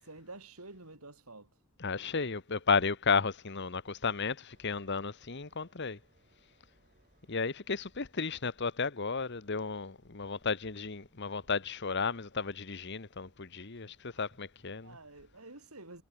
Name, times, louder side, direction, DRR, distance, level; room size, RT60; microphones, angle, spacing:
voice 1, 0.0-1.5 14.1-14.2 14.8-16.0, right 2 dB, 80° right, 7.8 m, -49 dB
voice 2, 1.8-6.0 7.3-15.0, left 5 dB, 50° left, 1.2 m, -33 dB
sound 1, 4.5-15.4, right 1 dB, 40° right, 7.6 m, -69 dB
head